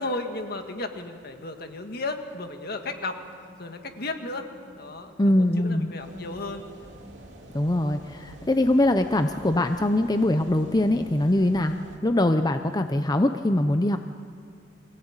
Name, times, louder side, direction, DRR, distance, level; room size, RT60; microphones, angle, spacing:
voice 1, 0.0-3.2 3.6-4.5 4.8-6.6, left 2 dB, 60° left, 6 dB, 1.8 m, -34 dB
sound 1, 2.6-8.3, equal, 50° right, 3.9 m, -54 dB
voice 2, 5.2-5.9 7.5-11.8 12.0-14.0, left 1 dB, 20° left, 7 dB, 0.7 m, -22 dB
sound 2, 6.0-12.0, right 1 dB, 85° right, 2.7 m, -47 dB
24.0 x 17.0 x 8.9 m, 2.1 s
head